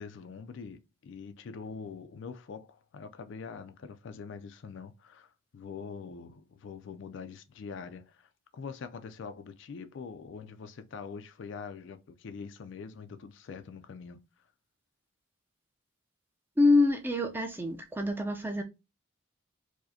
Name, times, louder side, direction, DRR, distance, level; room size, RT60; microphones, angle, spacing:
voice 1, 0.0-14.2, left 5 dB, 65° left, 0.3 m, -44 dB
voice 2, 16.6-18.6, left 2 dB, 10° right, 0.4 m, -26 dB
4.7 x 2.1 x 2.6 m
head